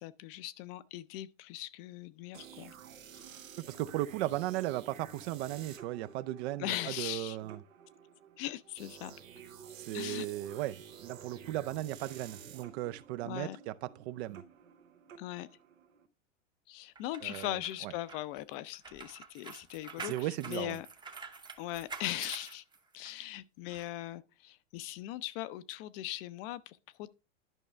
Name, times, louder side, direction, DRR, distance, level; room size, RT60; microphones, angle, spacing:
voice 1, 0.0-2.7 6.6-7.4 8.4-9.1 9.9-10.3 13.3-13.6 15.2-15.5 16.7-20.9 21.6-22.6 22.9-27.1, left 15 dB, 45° left, 0.6 m, -40 dB
sound 1, 2.3-16.1, right 7 dB, 85° right, 1.5 m, -52 dB
voice 2, 3.6-7.6 9.7-14.4 17.2-17.9 20.0-20.8, right 15 dB, 55° right, 0.6 m, -36 dB
sound 2, 17.0-23.2 23.7-23.8, right 4 dB, 10° right, 0.8 m, -47 dB
11.0 x 5.3 x 3.2 m
hypercardioid pair, 115°, 39 cm